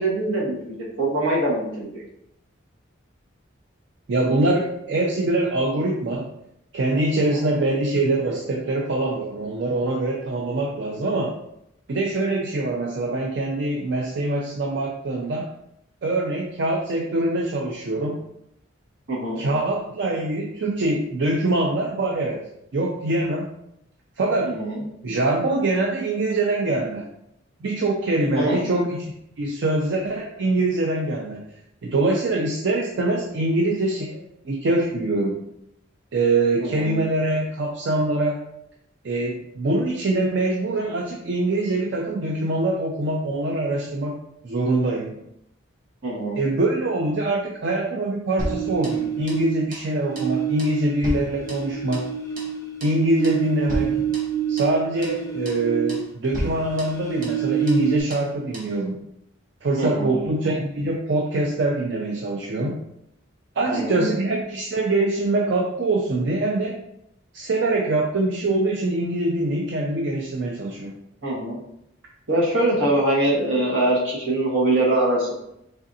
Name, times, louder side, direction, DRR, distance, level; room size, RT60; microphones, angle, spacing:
voice 1, 0.0-2.0 19.1-19.4 24.4-24.8 28.4-28.6 36.6-37.0 46.0-46.4 59.8-60.2 63.7-64.1 71.2-71.6 72.3-75.3, right 1 dB, 80° right, -4 dB, 1.3 m, -23 dB
voice 2, 4.1-6.3 6.7-11.4 11.9-15.5 16.0-18.2 19.4-22.4 22.7-23.5 24.2-24.6 25.0-27.1 27.6-31.4 31.8-35.4 36.1-38.4 39.0-44.1 44.4-45.1 46.4-52.1 52.8-54.0 54.5-59.0 59.6-62.7 63.6-66.8 67.3-70.9, right 2 dB, 60° right, -1 dB, 0.4 m, -24 dB
sound 1, 48.4-49.7 50.0-56.1 56.4-58.0, right 9 dB, 15° left, 0.5 m, -27 dB
sound 2, 48.4-49.5 49.7-49.9 50.1-50.3 50.6-52.1 52.4-52.5 52.8-53.0 53.2-53.4 53.7-54.8 55.0-55.2 55.4-55.6 55.9-56.1 56.3-57.4 57.7-57.8 58.1-58.3 58.5-58.7, equal, 40° right, 0.9 m, -33 dB
3.7 x 3.3 x 2.6 m, 0.80 s
head